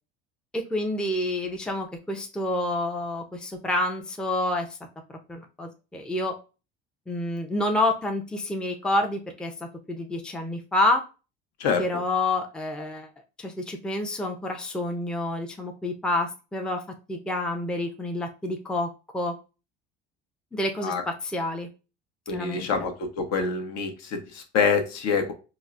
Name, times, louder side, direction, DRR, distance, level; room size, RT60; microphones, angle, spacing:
voice 1, 0.5-4.7 5.3-6.3 7.1-9.5 9.9-11.0 11.8-13.1 13.4-16.8 17.1-19.3 20.5-21.7 22.3-22.9, left 2 dB, 5° left, 3 dB, 0.5 m, -28 dB
voice 2, 22.3-25.3, left 5 dB, 60° left, 5 dB, 0.8 m, -26 dB
3.8 x 2.0 x 2.4 m, 0.32 s
hypercardioid pair, 75°, 30 cm